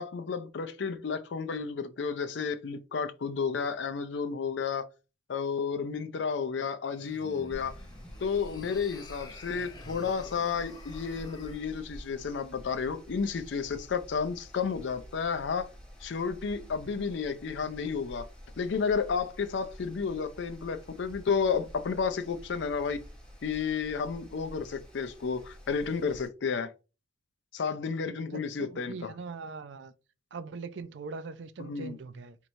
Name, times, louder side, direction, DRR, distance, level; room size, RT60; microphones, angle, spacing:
voice 1, 0.0-4.9 5.3-7.8 8.2-15.7 16.0-18.3 18.6-23.0 23.4-26.7 27.5-29.1 31.6-31.9, left 5 dB, 75° left, 0.4 m, -32 dB
sound 1, 6.9-11.6, left 2 dB, 20° left, 0.5 m, -49 dB
Mechanical fan, 7.5-26.3, equal, 5° left, 0.9 m, -49 dB
voice 2, 28.1-29.9 30.3-32.4, right 4 dB, 70° right, 0.4 m, -41 dB
4.4 x 3.0 x 2.6 m
head